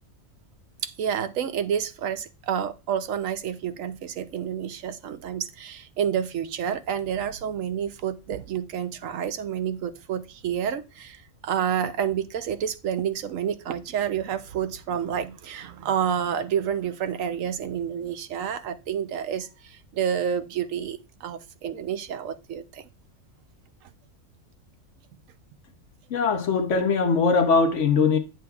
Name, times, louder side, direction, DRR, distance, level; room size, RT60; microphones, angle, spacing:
voice 1, 0.8-22.9, right 8 dB, 80° right, 1.1 m, -29 dB
voice 2, 26.1-28.2, left 5 dB, 65° left, 1.2 m, -21 dB
9.1 x 7.6 x 2.3 m
omnidirectional pair, 1.3 m